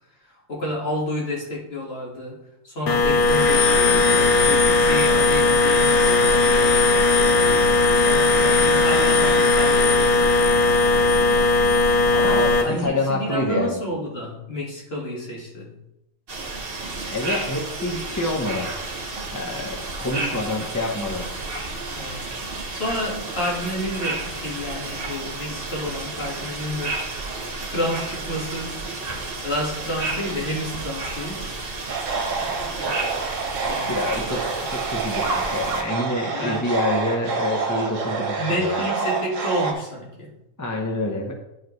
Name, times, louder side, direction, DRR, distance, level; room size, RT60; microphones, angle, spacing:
voice 1, 0.2-2.4 2.6-11.3 12.1-15.7 21.9-22.3 22.7-27.3 27.7-29.0 29.4-31.5 32.3-33.0 33.6-34.0 36.3-36.6 38.4-40.3, left 1 dB, 45° left, -3 dB, 2.1 m, -30 dB
sound 1, 2.9-12.6, left 2 dB, 85° left, 1.5 m, -18 dB
voice 2, 12.2-13.8 17.1-18.7 19.3-21.3 33.9-38.8 40.6-41.3, left 2 dB, 15° left, 0 dB, 0.7 m, -27 dB
sound 2, 16.3-35.8, right 3 dB, 40° right, 1.3 m, -31 dB
sound 3, 31.9-39.7, right 4 dB, 60° right, 1.3 m, -28 dB
11.0 x 4.9 x 3.2 m, 0.89 s
omnidirectional pair, 1.5 m